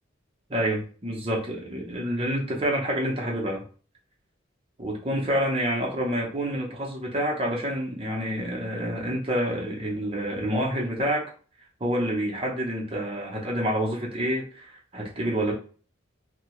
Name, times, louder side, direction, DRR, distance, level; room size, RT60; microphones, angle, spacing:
voice 1, 0.5-3.6 4.8-11.3 11.8-15.5, equal, 30° right, -2 dB, 0.7 m, -28 dB
2.7 x 2.2 x 3.0 m, 0.40 s
head